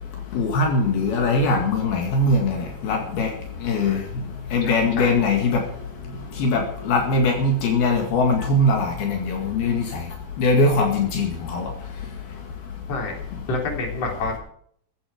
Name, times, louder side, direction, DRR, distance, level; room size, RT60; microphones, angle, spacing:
voice 1, 0.3-3.3 3.6-4.0 4.5-5.6 6.4-10.0 10.4-11.7, left 2 dB, 70° left, 2 dB, 4.0 m, -21 dB
voice 2, 3.7-4.1 4.6-5.2 8.4-8.5 12.9-13.2 13.5-14.4, left 2 dB, 40° left, 1 dB, 4.4 m, -29 dB
15.0 x 13.0 x 5.1 m, 0.62 s
omnidirectional pair, 4.6 m